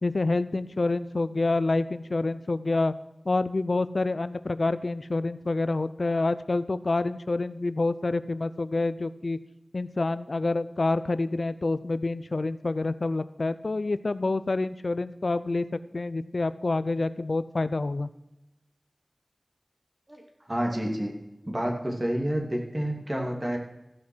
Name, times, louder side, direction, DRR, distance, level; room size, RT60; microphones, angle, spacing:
voice 1, 0.0-2.9 3.3-9.4 9.7-18.1, left 2 dB, 75° left, 14 dB, 0.4 m, -27 dB
voice 2, 20.5-21.1 21.5-23.6, equal, 30° right, 1 dB, 2.5 m, -29 dB
15.0 x 5.9 x 6.2 m, 0.95 s
wide cardioid pair, 45°, 0 cm